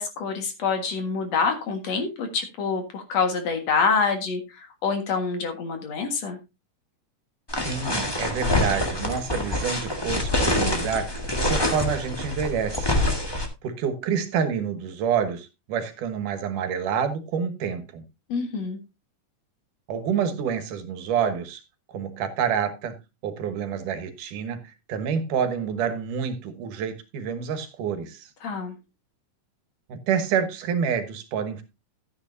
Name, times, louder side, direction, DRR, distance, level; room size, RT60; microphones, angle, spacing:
voice 1, 0.0-6.4 18.3-18.8 28.4-28.8, left 5 dB, 60° left, 2.7 m, -26 dB
sound 1, 7.5-13.4, left 1 dB, 20° left, 0.6 m, -26 dB
voice 2, 7.6-13.0 13.3-18.0 19.9-21.6 21.9-23.0 23.2-24.6 24.9-28.3 29.9-31.6, right 7 dB, 80° right, 2.9 m, -28 dB
13.0 x 9.5 x 2.7 m
omnidirectional pair, 3.6 m